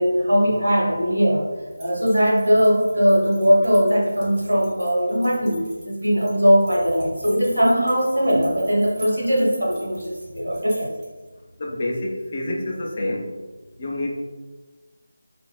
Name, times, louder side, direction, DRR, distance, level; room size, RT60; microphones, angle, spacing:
voice 1, 0.0-1.5 1.8-10.9, equal, 80° right, -3 dB, 1.0 m, -20 dB
sound 1, 1.7-11.3, right 1 dB, 15° right, 0.6 m, -46 dB
voice 2, 11.6-13.3 13.8-14.2, left 1 dB, 30° left, -1 dB, 0.5 m, -27 dB
2.5 x 2.5 x 3.2 m, 1.3 s
figure-of-eight pair, 160°, 0 cm